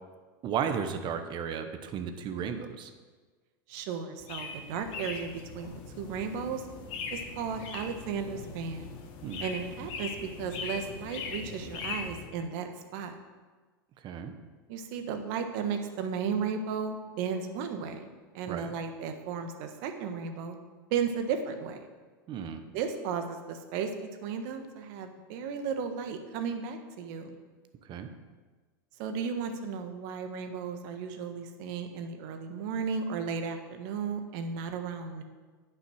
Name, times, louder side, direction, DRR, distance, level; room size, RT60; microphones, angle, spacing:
voice 1, 0.4-2.9 9.2-9.4 14.0-14.3 18.5-18.7 22.3-22.6 27.9-28.1, right 7 dB, 40° right, 8 dB, 1.1 m, -34 dB
voice 2, 3.7-6.7 7.1-8.9 9.4-13.1 14.7-18.1 18.3-20.6 20.9-21.9 22.7-23.9 24.2-27.4 29.0-35.2, right 6 dB, 60° right, 6 dB, 1.4 m, -34 dB
sound 1, 4.2-12.3, left 5 dB, 50° left, 1.7 m, -40 dB
9.8 x 6.2 x 6.4 m, 1.4 s
hypercardioid pair, 100°, 12 cm